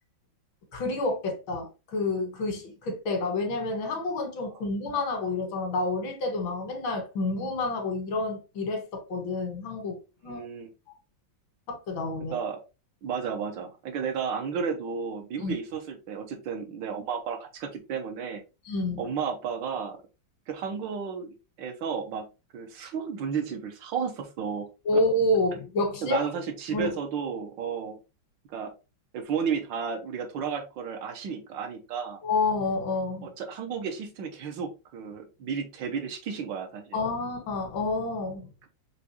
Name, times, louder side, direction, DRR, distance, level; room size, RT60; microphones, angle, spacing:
voice 1, 0.7-10.0 10.2-10.4 11.7-12.3 15.4-15.6 18.7-19.0 24.9-26.3 26.7-26.9 32.2-33.3 36.9-38.5, left 2 dB, 85° left, 2.1 m, -29 dB
voice 2, 10.3-10.7 12.3-12.6 13.0-18.4 19.0-20.0 20.5-22.3 22.5-24.7 26.0-28.0 28.5-28.7 29.1-32.2 33.2-37.0, right 6 dB, 75° right, 1.5 m, -33 dB
5.0 x 3.1 x 2.9 m
omnidirectional pair, 2.1 m